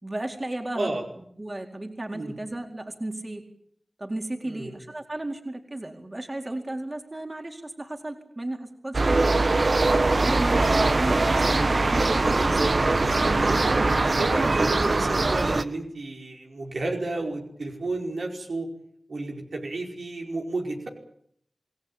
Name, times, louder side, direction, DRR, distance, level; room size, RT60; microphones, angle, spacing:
voice 1, 0.0-1.0 1.4-3.4 4.0-9.4 10.2-12.7, right 1 dB, 40° right, 3 dB, 4.4 m, -34 dB
voice 2, 4.4-4.8 10.5-10.8 13.4-13.7 14.2-18.7 19.1-20.9, right 2 dB, 90° right, 0 dB, 5.2 m, -31 dB
sound 1, 8.9-15.6, right 2 dB, 65° right, 1.3 m, -22 dB
28.0 x 18.5 x 8.9 m, 0.69 s
wide cardioid pair, 45°, 0 cm